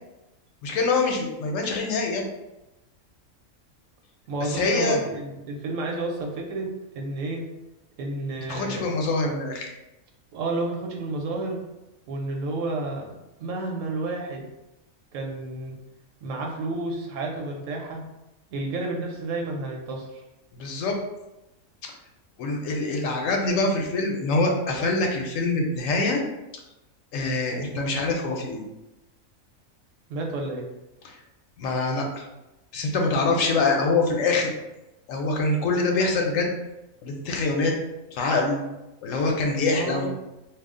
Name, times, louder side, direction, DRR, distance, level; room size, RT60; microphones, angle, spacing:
voice 1, 0.6-2.3 4.4-5.0 8.5-9.7 20.5-21.0 22.4-26.2 27.1-28.6 31.0-31.2 31.6-32.2 32.7-34.5 35.1-36.5 37.0-37.7 38.1-38.6 39.0-40.1, left 3 dB, 75° left, 1 dB, 0.9 m, -24 dB
voice 2, 4.3-6.7 6.9-7.4 8.0-8.9 10.3-11.6 12.1-13.1 13.4-14.5 15.1-15.8 16.2-18.0 18.5-20.2 30.1-30.6 39.7-40.1, right 2 dB, 70° right, 0 dB, 1.0 m, -30 dB
2.5 x 2.0 x 3.6 m, 0.97 s
omnidirectional pair, 1.4 m